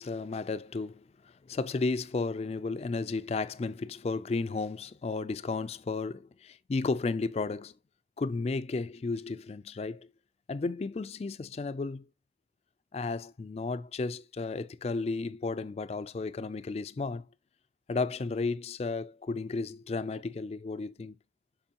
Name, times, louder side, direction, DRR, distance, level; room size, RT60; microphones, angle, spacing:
voice 1, 0.0-7.8 8.2-10.1 10.5-12.1 12.9-17.2 17.9-21.2, left 3 dB, 35° left, 0.3 m, -33 dB
6.8 x 5.7 x 2.8 m
head